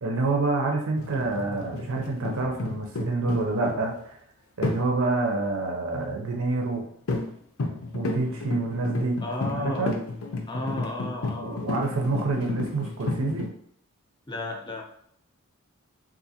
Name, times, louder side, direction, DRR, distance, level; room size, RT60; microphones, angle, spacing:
voice 1, 0.0-4.1 4.6-6.8 7.9-9.2 9.5-9.9 11.4-13.5, right 3 dB, 70° right, 1 dB, 0.6 m, -27 dB
sound 1, 1.0-3.9 4.6-4.9 5.9-6.3 6.8-6.9 7.1-7.3 7.6-13.5, left 2 dB, 80° left, 0.6 m, -32 dB
voice 2, 9.2-9.9 10.5-11.6 14.3-14.8, left 1 dB, 20° left, 1 dB, 0.6 m, -33 dB
3.7 x 2.6 x 2.8 m, 0.68 s
head